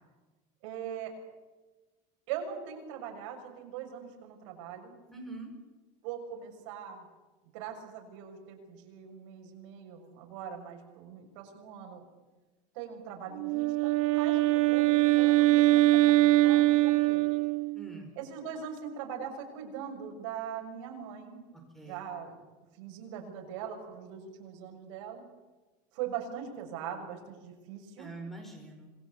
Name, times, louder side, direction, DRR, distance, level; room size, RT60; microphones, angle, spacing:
voice 1, 0.6-1.1 2.3-4.9 6.0-7.0 7.5-12.0 12.7-17.2 18.1-21.4 21.8-22.3 22.8-25.2 25.9-28.1, right 8 dB, 65° right, 2 dB, 6.3 m, -41 dB
voice 2, 5.1-5.5 17.7-18.1 21.7-22.2 28.0-28.9, right 2 dB, ahead, 4 dB, 4.8 m, -44 dB
Wind instrument woodwind instrument, 13.3-17.9, right 18 dB, 90° right, 2.1 m, -23 dB
26.5 x 20.5 x 8.5 m, 1.2 s
cardioid pair, 180°, 17 cm